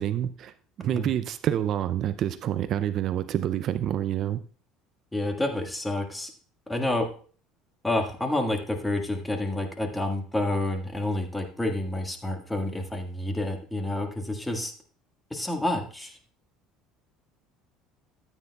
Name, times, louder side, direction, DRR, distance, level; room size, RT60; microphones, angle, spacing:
voice 1, 0.0-4.4, right 10 dB, 50° right, 13 dB, 0.5 m, -28 dB
voice 2, 5.1-6.3 6.7-7.1 7.8-14.7 15.3-16.2, left 1 dB, 10° left, 4 dB, 1.8 m, -29 dB
13.5 x 9.0 x 2.3 m, 0.42 s
supercardioid pair, 95°, 0 cm